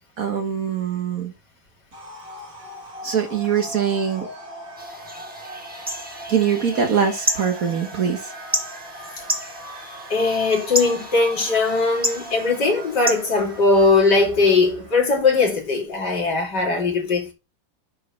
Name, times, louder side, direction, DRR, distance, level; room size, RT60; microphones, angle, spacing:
voice 1, 0.2-1.3 3.0-4.3 6.3-8.3, right 7 dB, 50° right, 1.5 m, -23 dB
sound 1, 1.9-15.5, right 1 dB, 80° right, 4.8 m, -39 dB
sound 2, 4.8-14.1, equal, 5° right, 1.0 m, -31 dB
voice 2, 10.1-17.3, left 3 dB, 60° left, 3.4 m, -19 dB
9.5 x 6.9 x 3.2 m
omnidirectional pair, 2.1 m